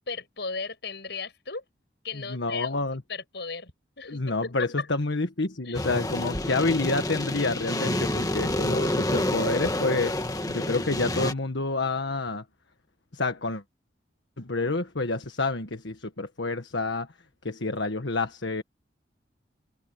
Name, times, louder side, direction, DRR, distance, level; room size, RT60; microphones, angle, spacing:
voice 1, 0.0-1.6 2.0-2.8 3.1-4.9 5.6-5.9, left 4 dB, 65° left, 6.6 m, -36 dB
voice 2, 2.3-3.0 4.0-10.2 10.5-12.4 13.1-13.6 14.4-17.1 17.4-18.6, left 3 dB, 85° left, 1.5 m, -28 dB
sound 1, 5.7-11.3, left 1 dB, 20° left, 1.8 m, -28 dB
head